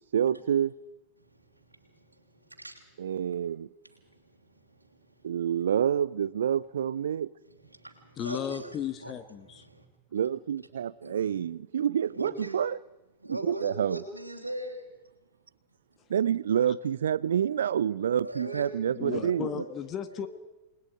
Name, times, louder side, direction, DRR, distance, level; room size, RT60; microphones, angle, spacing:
voice 1, 0.1-0.7 3.0-3.7 5.2-7.3 10.1-12.8 13.3-14.0 16.1-19.6, right 9 dB, 65° right, 0.6 m, -28 dB
voice 2, 1.2-2.9 3.8-5.3 7.5-9.1 9.4-9.9 10.1-10.2 11.0-11.3 12.2-12.6 13.2-14.9 18.2-18.7 19.1-19.7 20.1-20.3, right 1 dB, 85° right, 3.2 m, -41 dB
voice 3, 8.2-9.7 19.0-20.3, left 9 dB, 30° left, 1.3 m, -35 dB
29.0 x 20.5 x 5.1 m
figure-of-eight pair, 90°, 0 cm